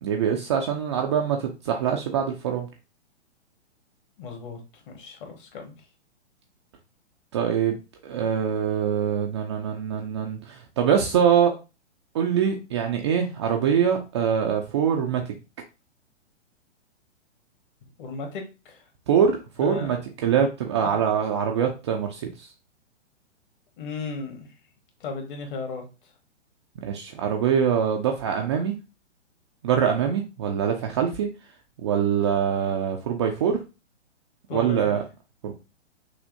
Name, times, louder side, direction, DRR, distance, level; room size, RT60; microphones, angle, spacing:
voice 1, 0.0-2.7 7.3-7.8 8.0-11.5 12.1-15.2 19.1-20.0 20.2-22.5 26.8-28.7 29.6-31.3 31.8-33.6 34.5-35.0 35.4-35.5, right 8 dB, 25° right, 0.4 m, -24 dB
voice 2, 4.2-4.6 4.9-5.7 18.0-18.8 19.6-19.9 20.8-21.1 23.8-24.5 25.0-25.8 34.5-35.0, left 4 dB, 45° left, 1.5 m, -35 dB
6.2 x 2.7 x 2.6 m
figure-of-eight pair, 120°, 36 cm